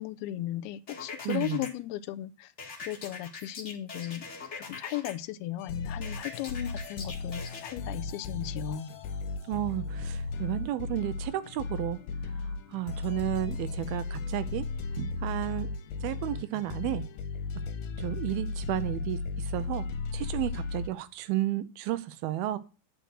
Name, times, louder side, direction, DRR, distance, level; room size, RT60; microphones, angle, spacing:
voice 1, 0.0-2.5 2.9-4.2 4.6-8.9, left 14 dB, 90° left, 2.6 m, -36 dB
sound 1, 0.9-1.7 2.6-5.1 6.0-7.7, left 4 dB, 45° left, 0.9 m, -42 dB
voice 2, 1.3-1.6 9.5-12.0 12.7-14.7 15.0-15.7 16.0-17.0 18.0-19.8 20.1-22.6, right 14 dB, 85° right, 2.5 m, -32 dB
sound 2, 5.6-20.9, left 4 dB, 70° left, 2.2 m, -35 dB
9.0 x 5.3 x 6.4 m
omnidirectional pair, 4.4 m